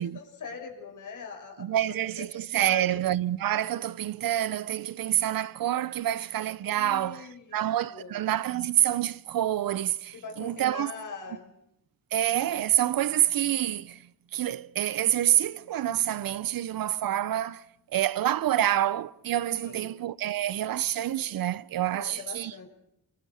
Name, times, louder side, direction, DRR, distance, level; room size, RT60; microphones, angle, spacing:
voice 1, 0.0-1.8 2.2-2.3 2.6-2.9 6.6-7.6 7.9-8.2 10.1-11.5 19.6-19.9 21.9-22.7, left 5 dB, 60° left, 6.8 m, -42 dB
voice 2, 1.6-10.9 12.1-14.1 14.3-17.6 17.9-22.5, right 12 dB, 85° right, 1.0 m, -27 dB
30.0 x 27.0 x 6.6 m
wide cardioid pair, 130°, 34 cm